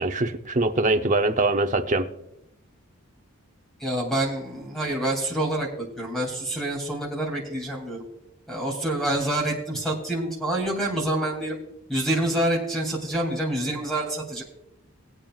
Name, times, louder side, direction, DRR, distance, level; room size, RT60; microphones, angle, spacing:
voice 1, 0.0-2.1, right 2 dB, 35° right, 6 dB, 0.8 m, -23 dB
voice 2, 3.8-8.0 8.5-11.6 11.9-14.4, right 1 dB, ahead, -3 dB, 2.9 m, -27 dB
20.0 x 8.9 x 2.4 m, 0.80 s
head